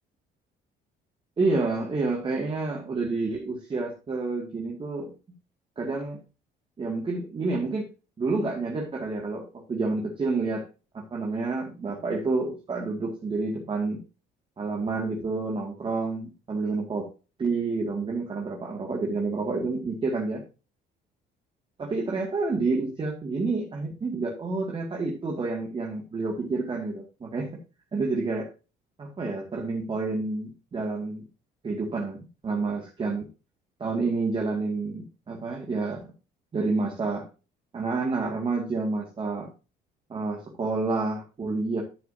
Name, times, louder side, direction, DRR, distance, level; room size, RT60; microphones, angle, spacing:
voice 1, 1.4-5.1 5.8-6.2 6.8-7.9 8.2-10.7 10.9-14.0 14.6-17.1 17.4-20.4 21.8-27.6 27.9-28.5 29.0-31.3 31.6-33.3 33.8-36.1 36.5-37.3 37.7-39.5 40.1-41.8, right 3 dB, 30° right, 0 dB, 2.3 m, -29 dB
12.5 x 6.8 x 2.8 m, 0.32 s
cardioid pair, 110°, 17 cm